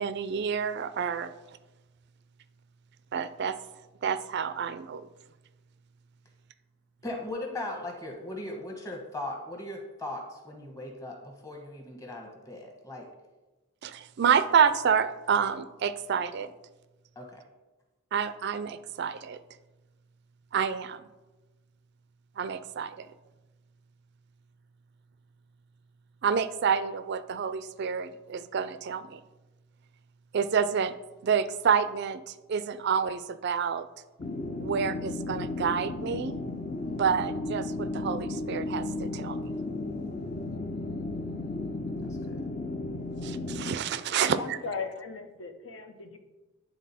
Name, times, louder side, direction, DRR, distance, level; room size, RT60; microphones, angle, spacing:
voice 1, 0.0-1.3 3.1-3.6 4.0-5.1 13.8-16.5 18.1-19.4 20.5-21.0 22.4-23.1 26.2-29.2 30.3-31.0 31.2-33.9 34.6-36.4 37.0-39.5 43.2-44.6, right 7 dB, 55° right, 13 dB, 0.4 m, -28 dB
voice 2, 7.0-13.1 17.1-17.4 36.8-37.3 42.0-42.4, left 1 dB, 15° left, 1 dB, 1.2 m, -39 dB
sound 1, 34.2-43.7, left 2 dB, 35° left, 0.5 m, -34 dB
voice 3, 44.1-46.2, left 4 dB, 70° left, 6 dB, 0.8 m, -38 dB
10.5 x 3.8 x 4.2 m, 1.1 s
head